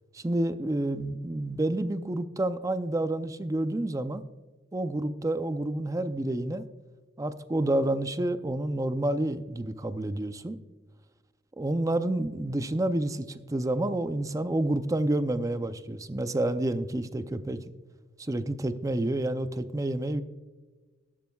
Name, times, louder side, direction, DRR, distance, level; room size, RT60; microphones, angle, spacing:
voice 1, 0.1-4.2 4.7-6.6 7.2-10.6 11.6-17.6 18.2-20.2, right 1 dB, 20° right, 12 dB, 0.5 m, -29 dB
12.5 x 12.0 x 2.3 m, 1.3 s
head